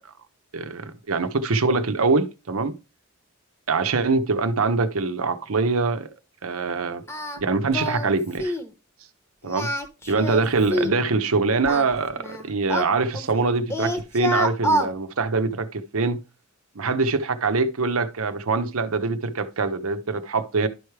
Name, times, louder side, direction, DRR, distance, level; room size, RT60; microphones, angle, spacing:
voice 1, 0.5-2.8 3.7-6.1 6.4-7.0 7.4-8.5 9.4-9.7 10.1-16.2 16.8-20.7, right 4 dB, 75° right, 0.8 m, -24 dB
Singing, 7.1-7.4 7.7-8.1 8.4-8.7 9.4-11.0 11.7-13.4 13.7-14.9, equal, 10° left, 0.9 m, -27 dB
11.0 x 4.7 x 3.2 m
head